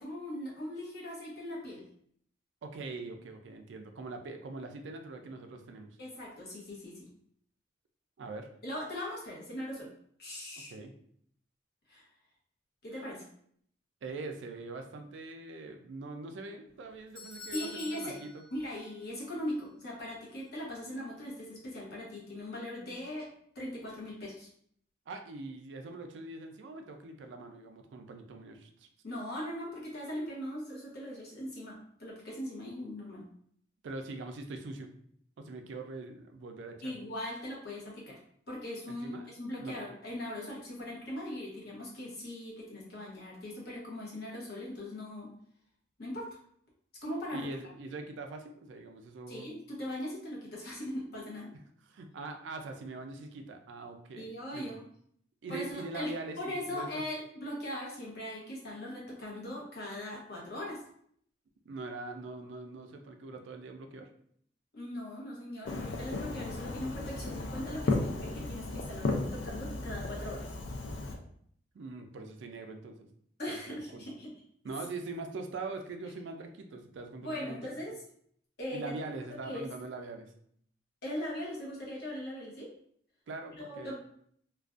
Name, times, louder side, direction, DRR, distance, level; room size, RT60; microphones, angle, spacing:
voice 1, 0.0-1.8 6.0-7.1 8.6-9.9 10.2-10.7 11.9-12.0 12.8-13.2 17.5-18.2 18.5-23.3 23.5-24.5 29.0-33.2 36.8-38.2 38.5-45.3 46.0-46.3 47.0-47.5 49.3-51.5 54.2-54.8 55.5-56.1 56.4-60.8 64.7-70.5 73.4-74.3 77.2-78.0 78.6-78.9 79.3-79.7 81.0-82.7 83.6-83.9, left 1 dB, 55° left, -4 dB, 0.8 m, -40 dB
voice 2, 2.6-6.0 8.2-8.5 10.7-10.9 13.0-13.1 14.0-18.4 25.1-28.9 33.8-34.9 35.4-36.9 38.9-39.3 39.6-39.8 47.3-49.5 51.5-51.6 51.9-54.8 55.4-56.4 56.7-57.0 61.7-64.1 71.7-73.1 73.5-74.0 74.6-77.7 78.7-80.3 83.3-83.9, right 3 dB, 75° right, 5 dB, 0.3 m, -42 dB
Doorbell, 16.7-19.2 19.5-19.6 20.3-20.4, left 4 dB, 25° left, 1.0 m, -47 dB
Fireworks, 65.7-71.2, left 3 dB, 75° left, 0.4 m, -35 dB
2.4 x 2.2 x 2.4 m, 0.64 s
head